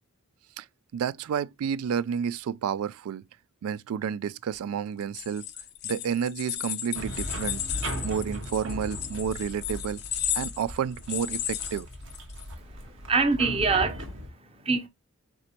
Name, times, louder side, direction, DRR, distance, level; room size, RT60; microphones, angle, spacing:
voice 1, 0.9-3.2 3.6-5.5 5.8-10.0 10.3-11.9, right 7 dB, 80° right, 0.3 m, -30 dB
sound 1, 5.0-12.4, left 11 dB, 50° left, 0.6 m, -34 dB
sound 2, 6.9-14.3, equal, 55° right, 1.0 m, -38 dB
voice 2, 12.6-14.9, right 4 dB, 25° right, 0.7 m, -26 dB
4.1 x 3.1 x 4.1 m
head